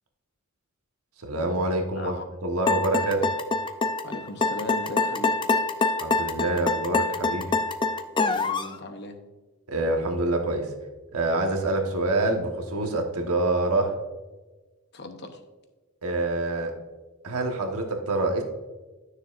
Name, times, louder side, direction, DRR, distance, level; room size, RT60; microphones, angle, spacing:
voice 1, 1.2-2.2 2.4-3.3 6.0-7.5 9.7-10.7 11.1-13.9 16.0-16.7 17.2-18.4, right 2 dB, 80° right, 3 dB, 1.2 m, -26 dB
voice 2, 1.9-2.3 4.0-5.4 8.3-9.2 14.9-15.4, left 2 dB, 50° left, 7 dB, 0.8 m, -38 dB
sound 1, 2.7-8.7, left 3 dB, 20° left, 0.4 m, -25 dB
12.0 x 6.5 x 2.5 m, 1.2 s
head